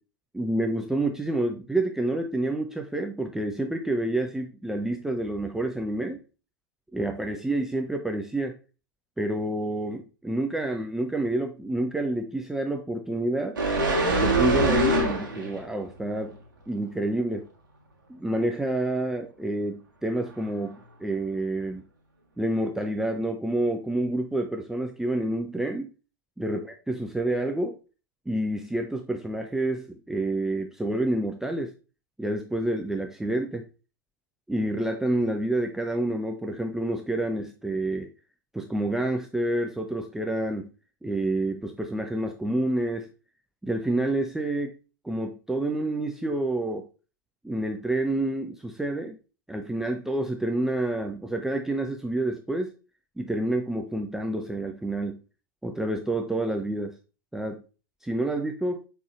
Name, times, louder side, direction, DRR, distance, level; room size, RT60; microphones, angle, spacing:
voice 1, 0.3-6.2 6.9-8.6 9.2-13.6 14.1-16.4 16.7-17.5 18.1-21.8 22.4-25.9 26.4-26.6 26.9-27.7 28.3-31.7 32.2-33.7 34.5-38.1 38.5-40.7 41.0-43.1 43.6-44.7 45.0-46.8 47.4-49.2 49.5-52.7 53.2-55.2 55.6-56.9 57.3-57.6 58.0-58.8, right 1 dB, 5° right, 3 dB, 0.4 m, -28 dB
sound 1, 13.6-15.6 16.0-16.2, right 1 dB, 70° right, 1.2 m, -23 dB
5.2 x 3.4 x 2.4 m, 0.33 s
figure-of-eight pair, 90°, 11 cm